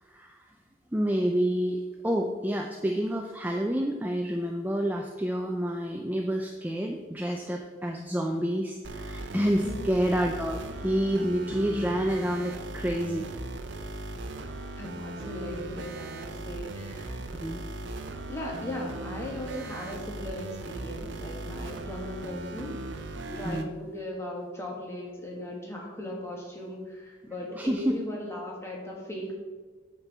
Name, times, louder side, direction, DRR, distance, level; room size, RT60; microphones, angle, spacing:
voice 1, 0.0-0.6 0.9-13.3 17.4-17.6 23.4-23.7 27.5-28.0, equal, 10° right, 2 dB, 0.4 m, -28 dB
sound 1, 8.8-23.7, right 2 dB, 70° right, 0.7 m, -38 dB
voice 2, 14.8-17.9 18.3-22.8 23.3-29.3, left 1 dB, 15° left, -2 dB, 1.6 m, -38 dB
8.5 x 4.5 x 7.0 m, 1.4 s
head